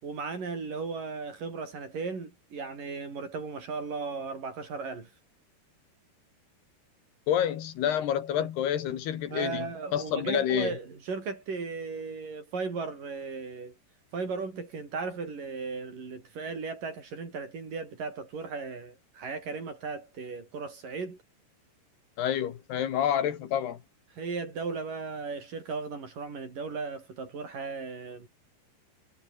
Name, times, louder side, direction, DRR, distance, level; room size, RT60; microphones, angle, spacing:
voice 1, 0.0-5.1 8.4-8.5 9.3-13.8 14.1-21.2 24.2-28.3, right 4 dB, 50° right, 7.1 m, -36 dB
voice 2, 7.3-10.7 22.2-23.8, left 10 dB, 75° left, 4.0 m, -28 dB
omnidirectional pair, 4.9 m